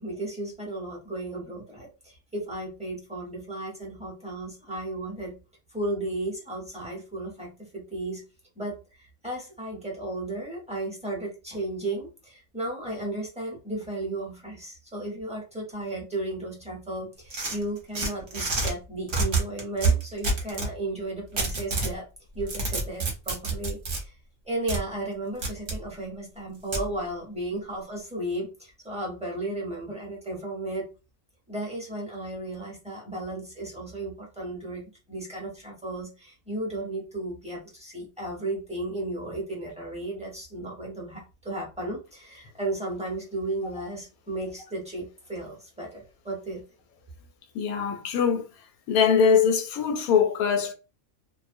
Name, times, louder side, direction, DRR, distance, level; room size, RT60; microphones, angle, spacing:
voice 1, 0.0-5.3 5.7-8.2 8.6-8.8 9.2-22.1 22.3-24.1 24.4-30.9 31.5-34.8 35.1-46.6, right 1 dB, 5° right, 0.6 m, -34 dB
sound 1, 17.3-18.7 19.1-20.7 21.4-22.0 22.3-24.0 24.7-24.8 25.4-25.8 26.7-26.9, right 3 dB, 45° right, 0.8 m, -27 dB
voice 2, 47.5-48.4 48.9-50.7, left 6 dB, 90° left, 1.1 m, -22 dB
2.4 x 2.1 x 2.5 m
omnidirectional pair, 1.5 m